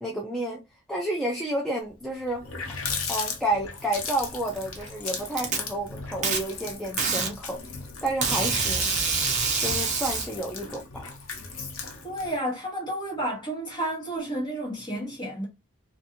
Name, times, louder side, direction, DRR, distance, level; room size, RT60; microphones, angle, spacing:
voice 1, 0.0-2.5 3.1-7.6 8.0-8.9 9.6-11.1, right 1 dB, ahead, 0.4 m, -30 dB
Water tap faucet, 1.9-2.0 2.3-12.4, left 5 dB, 60° left, 0.7 m, -37 dB
Packing tape duct tape, 4.6-5.6 6.2-6.4 7.0-7.3 8.2-10.2, right 4 dB, 30° right, 0.7 m, -26 dB
voice 2, 12.0-15.5, right 1 dB, 20° left, 1.2 m, -31 dB
2.5 x 2.5 x 2.7 m
head